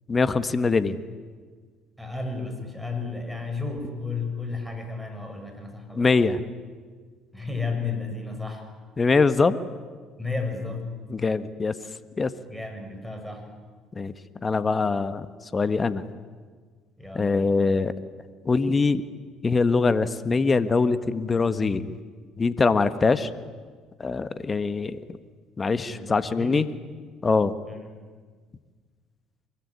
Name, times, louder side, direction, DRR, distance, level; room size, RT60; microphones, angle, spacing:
voice 1, 0.1-1.0 5.9-6.4 9.0-9.6 11.1-11.7 12.2-12.3 13.9-14.1 14.4-15.3 15.5-16.0 17.1-17.9 18.4-19.0 19.4-21.9 22.4-23.3 24.0-25.2 25.6-26.7 27.2-27.5, left 4 dB, 30° left, 13 dB, 1.4 m, -23 dB
voice 2, 2.0-6.1 7.3-8.7 10.2-10.9 12.5-13.4 17.0-17.6 25.9-26.6 27.7-27.8, left 4 dB, ahead, 5 dB, 7.1 m, -33 dB
24.5 x 21.5 x 9.9 m, 1.5 s
hypercardioid pair, 60°, 0 cm